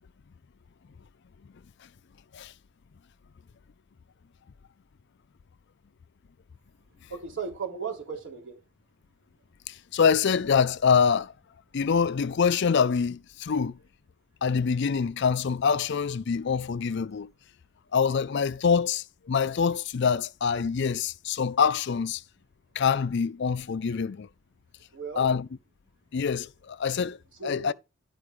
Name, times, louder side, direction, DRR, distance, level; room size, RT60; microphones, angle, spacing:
voice 1, 7.1-8.6 24.9-25.3 27.4-27.7, right 6 dB, 60° right, 3.7 m, -36 dB
voice 2, 9.7-11.3 11.7-13.8 14.4-17.3 17.9-22.2 22.8-24.3 25.2-25.5 26.1-27.2 27.4-27.7, left 6 dB, 55° left, 0.4 m, -25 dB
11.5 x 4.5 x 4.9 m
head